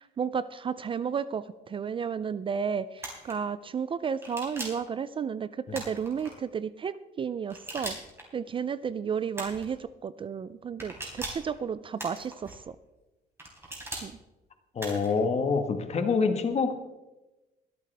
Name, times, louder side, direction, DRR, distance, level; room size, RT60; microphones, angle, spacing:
voice 1, 0.0-8.0 8.3-9.8 10.0-12.8 14.0-14.1, right 6 dB, 30° right, 15 dB, 0.4 m, -32 dB
sound 1, 3.0-3.3 4.2-4.9 5.7-6.3 7.5-8.2 9.3-9.7 10.8-11.5 12.0-12.5 13.4-14.1 14.8-15.2, right 2 dB, 15° right, 3.9 m, -39 dB
voice 2, 14.7-16.7, left 5 dB, 40° left, 7 dB, 1.5 m, -26 dB
23.5 x 8.4 x 3.4 m, 1.0 s
cardioid pair, 110°, 17 cm